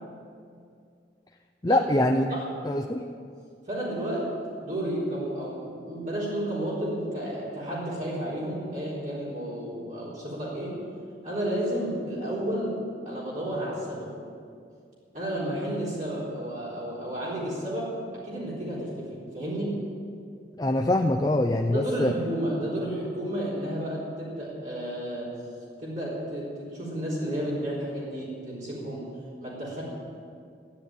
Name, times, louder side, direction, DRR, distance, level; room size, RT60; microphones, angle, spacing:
voice 1, 1.6-2.3 2.6-3.0 20.6-22.1, left 1 dB, 20° left, 3 dB, 0.5 m, -24 dB
voice 2, 3.7-10.8 11.2-12.8 13.0-14.1 15.1-17.9 18.2-19.8 21.7-25.3 25.8-29.0 29.4-29.8, right 1 dB, 45° right, -8 dB, 4.0 m, -32 dB
13.0 x 9.6 x 8.9 m, 2.3 s
head